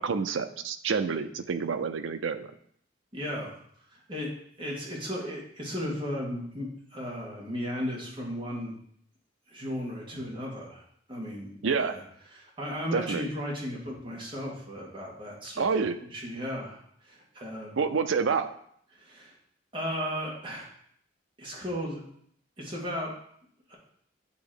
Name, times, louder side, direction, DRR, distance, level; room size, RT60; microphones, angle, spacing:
voice 1, 0.0-2.5 11.6-12.0 12.9-13.2 15.6-16.0 17.8-18.5, right 5 dB, 90° right, 10 dB, 0.5 m, -28 dB
voice 2, 3.1-3.5 3.9-4.3 4.6-8.8 9.5-10.8 11.1-12.0 12.3-15.7 16.1-17.8 18.9-19.3 19.7-20.7 21.4-22.0 22.6-23.1 23.7-23.8, equal, 25° right, -4 dB, 1.8 m, -35 dB
8.5 x 3.0 x 4.9 m, 0.66 s
head